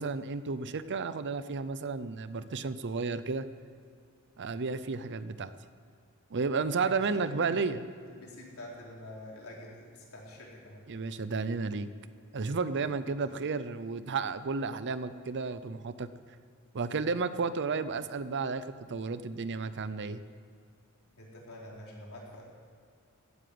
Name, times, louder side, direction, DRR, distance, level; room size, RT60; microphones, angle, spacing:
voice 1, 0.0-3.4 4.4-5.5 6.3-7.8 10.9-11.9 12.3-16.1 16.7-20.2, right 4 dB, 55° right, 13 dB, 0.6 m, -32 dB
voice 2, 6.6-7.5 8.1-10.8 13.2-13.5 21.2-22.4, left 1 dB, 70° left, -3 dB, 4.2 m, -47 dB
16.5 x 10.0 x 7.8 m, 2.3 s
head